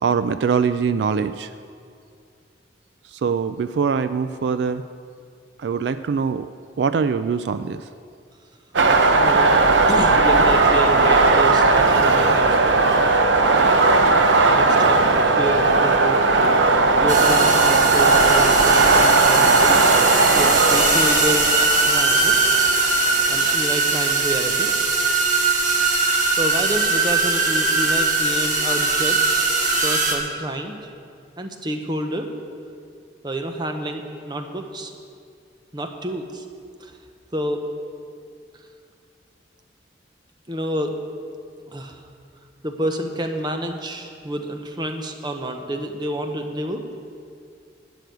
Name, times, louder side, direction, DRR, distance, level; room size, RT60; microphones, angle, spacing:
voice 1, 0.0-1.5 3.1-4.8 5.6-6.5 6.8-7.9, right 6 dB, 70° right, 12 dB, 0.3 m, -23 dB
sound 1, 8.7-23.6, right 3 dB, 90° right, 0.8 m, -17 dB
voice 2, 9.2-9.5 9.9-12.6 13.6-13.8 14.1-16.2 16.6-19.9 20.3-21.5 21.8-22.4 23.3-24.7 26.0-29.5 29.8-30.9 31.4-32.3 33.2-34.9 35.7-36.4 36.8-36.9 37.3-37.7 40.5-41.0 41.7-42.0 42.6-46.8, right 1 dB, 25° right, 5 dB, 0.8 m, -28 dB
sound 2, 17.1-30.2, right 3 dB, 45° right, 1.4 m, -20 dB
11.5 x 6.2 x 9.4 m, 2.3 s
head